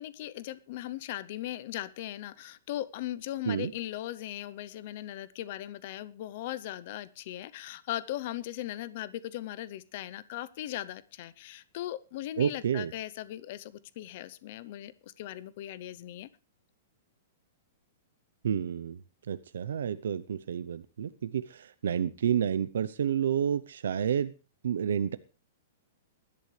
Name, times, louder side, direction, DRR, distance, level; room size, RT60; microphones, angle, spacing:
voice 1, 0.0-16.3, left 13 dB, 35° left, 18 dB, 0.6 m, -38 dB
voice 2, 12.4-12.9 18.4-19.0 19.3-24.3 24.6-25.2, right 8 dB, 80° right, 13 dB, 0.7 m, -30 dB
20.5 x 11.5 x 3.3 m, 0.31 s
hypercardioid pair, 180°, 0 cm